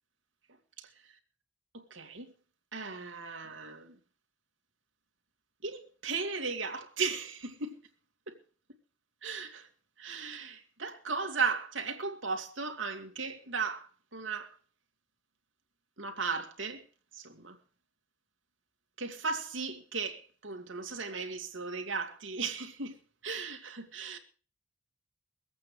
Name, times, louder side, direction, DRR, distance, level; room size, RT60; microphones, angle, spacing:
voice 1, 1.9-2.3 2.7-4.0 5.6-7.8 8.3-8.4 9.2-9.7 10.0-14.5 16.0-16.8 17.1-17.6 19.0-23.0 23.2-24.2, right 5 dB, 75° right, 2.4 m, -36 dB
22.5 x 8.6 x 4.9 m
head